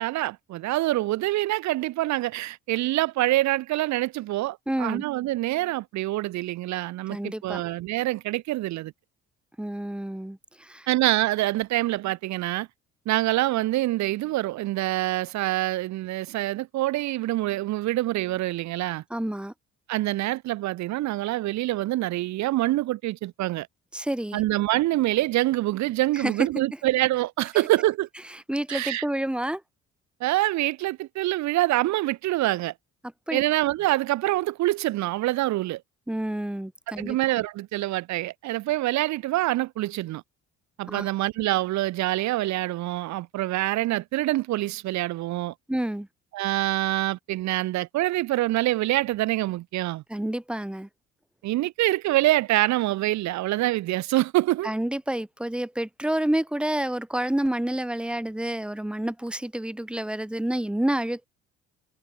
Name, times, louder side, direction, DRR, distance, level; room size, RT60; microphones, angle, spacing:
voice 1, 0.0-8.9 10.9-12.7 13.1-19.0 19.9-23.7 24.3-28.1 28.7-29.0 30.2-32.7 33.3-35.8 37.0-40.2 40.8-45.5 46.3-50.0 51.4-54.7, right 16 dB, 65° right, 0.8 m, -25 dB
voice 2, 4.7-5.0 7.1-7.6 9.6-10.9 19.1-19.5 23.9-24.4 26.1-26.3 28.5-29.6 33.3-33.4 36.1-37.2 40.9-41.1 45.7-46.1 50.1-50.9 54.6-61.2, right 1 dB, 5° right, 0.5 m, -29 dB
supercardioid pair, 70°, 31 cm